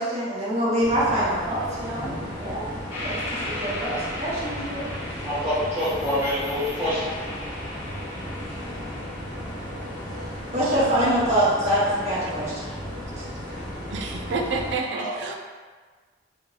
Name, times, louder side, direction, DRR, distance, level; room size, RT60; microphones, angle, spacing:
voice 1, 0.0-2.7 3.0-3.2 3.4-4.9 10.5-12.7 13.1-13.2, right 1 dB, 35° right, -8 dB, 1.0 m, -25 dB
sound 1, 0.8-14.8, equal, 20° left, 0.7 m, -35 dB
sound 2, 2.9-10.2, left 1 dB, 45° left, 1.4 m, -37 dB
voice 2, 5.2-7.2 14.9-15.2, left 1 dB, 15° right, -13 dB, 1.4 m, -26 dB
voice 3, 13.9-15.3, right 3 dB, 70° right, 3 dB, 0.4 m, -29 dB
3.3 x 2.8 x 2.8 m, 1.5 s
head